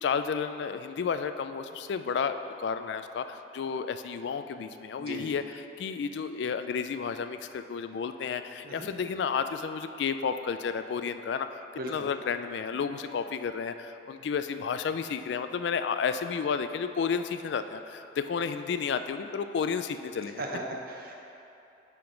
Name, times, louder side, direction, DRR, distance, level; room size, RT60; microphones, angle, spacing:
voice 1, 0.0-20.4, left 6 dB, 70° left, 9 dB, 0.3 m, -32 dB
voice 2, 11.8-12.1 20.4-21.1, right 1 dB, 55° right, 0 dB, 0.7 m, -37 dB
10.0 x 3.7 x 3.8 m, 2.9 s
head